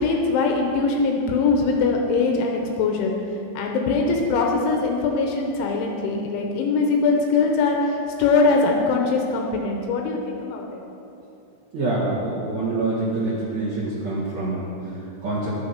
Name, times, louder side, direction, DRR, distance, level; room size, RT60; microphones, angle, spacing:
voice 1, 0.0-3.1 3.6-10.8, left 4 dB, 80° left, 1 dB, 3.2 m, -22 dB
voice 2, 11.7-15.5, right 2 dB, 50° right, -9 dB, 2.3 m, -26 dB
11.0 x 9.9 x 5.9 m, 2.8 s
omnidirectional pair, 5.7 m